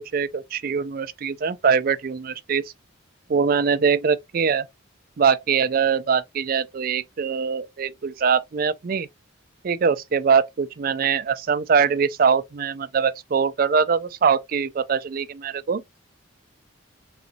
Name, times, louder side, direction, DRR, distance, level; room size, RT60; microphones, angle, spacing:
voice 1, 0.0-2.6 3.3-4.7 5.2-9.1 9.6-15.8, right 6 dB, 45° right, 0.4 m, -22 dB
3.9 x 3.1 x 2.7 m
head